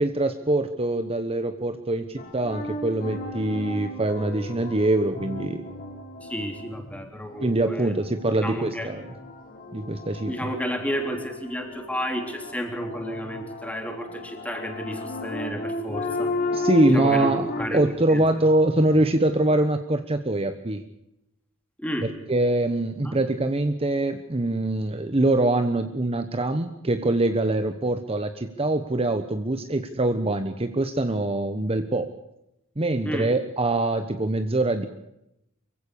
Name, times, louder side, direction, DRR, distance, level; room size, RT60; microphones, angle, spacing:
voice 1, 0.0-5.7 7.4-9.1 9.7-10.3 16.5-20.8 22.3-32.1 32.8-34.9, right 2 dB, 30° right, 8 dB, 1.1 m, -24 dB
sound 1, 2.2-17.7, left 2 dB, 45° left, 3.5 m, -34 dB
voice 2, 6.2-8.0 8.3-8.9 10.3-16.3 16.8-17.8 18.1-18.2 21.8-22.1 23.0-23.2 33.0-33.3, equal, 5° left, 4 dB, 3.5 m, -32 dB
24.5 x 16.0 x 8.4 m, 0.85 s
head